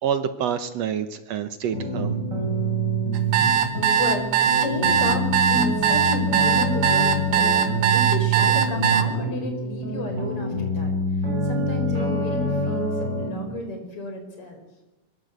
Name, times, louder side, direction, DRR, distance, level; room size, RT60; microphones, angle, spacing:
voice 1, 0.0-2.1, right 8 dB, 65° right, 10 dB, 1.9 m, -27 dB
sound 1, 1.7-13.3, right 1 dB, 30° right, 8.4 m, -26 dB
sound 2, 3.1-9.0, right 9 dB, 85° right, 2.9 m, -20 dB
voice 2, 4.0-10.9 11.4-14.6, left 1 dB, 45° left, 5 dB, 5.3 m, -32 dB
22.5 x 21.5 x 8.1 m, 1.1 s
omnidirectional pair, 3.7 m